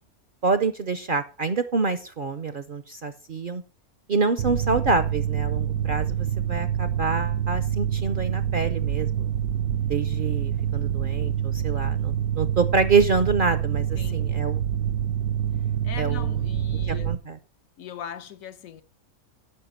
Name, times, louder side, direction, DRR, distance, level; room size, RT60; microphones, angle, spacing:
voice 1, 0.4-3.6 4.1-9.3 9.9-14.6 16.0-16.4 16.9-17.4, right 4 dB, 50° right, 0.7 m, -26 dB
Mechanical fan, 4.4-17.2, right 9 dB, 80° right, 1.1 m, -26 dB
voice 2, 13.9-14.3 15.8-17.1 17.8-18.8, left 9 dB, 70° left, 1.2 m, -39 dB
12.5 x 5.4 x 5.4 m
omnidirectional pair, 1.5 m